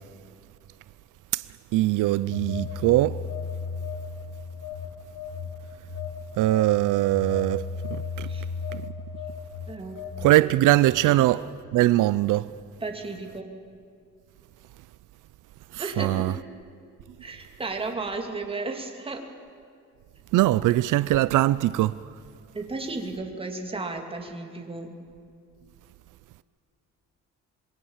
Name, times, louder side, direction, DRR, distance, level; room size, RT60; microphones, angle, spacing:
voice 1, 1.7-3.2 6.4-8.3 8.7-8.8 10.2-11.4 11.7-12.5 15.7-16.3 20.3-22.0, right 16 dB, 80° right, 0.6 m, -22 dB
Telephone, 2.3-4.3 4.6-10.5, left 5 dB, 80° left, 2.6 m, -35 dB
voice 2, 9.7-10.0 11.0-11.2 12.8-13.5 15.8-16.4 17.2-19.2 22.5-24.9, right 3 dB, 20° right, 2.6 m, -34 dB
27.0 x 23.0 x 7.3 m
cardioid pair, 155°, 30 cm